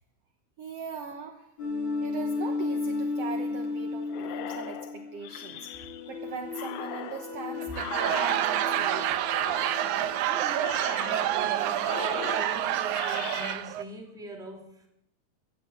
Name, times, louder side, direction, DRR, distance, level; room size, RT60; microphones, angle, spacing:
voice 1, 0.6-1.5 2.0-9.3, right 5 dB, 60° right, 4 dB, 1.9 m, -40 dB
sound 1, 1.6-10.6, left 3 dB, 40° left, 5.2 m, -34 dB
sound 2, 4.1-6.2 6.5-8.9 9.3-10.2 10.6-11.5 11.8-13.6, left 12 dB, 75° left, 2.0 m, -40 dB
Laughter / Crowd, 7.6-13.8, right 12 dB, 75° right, 2.1 m, -28 dB
voice 2, 10.2-14.9, right 1 dB, ahead, 1 dB, 2.1 m, -42 dB
15.0 x 8.3 x 8.8 m, 0.75 s
omnidirectional pair, 3.6 m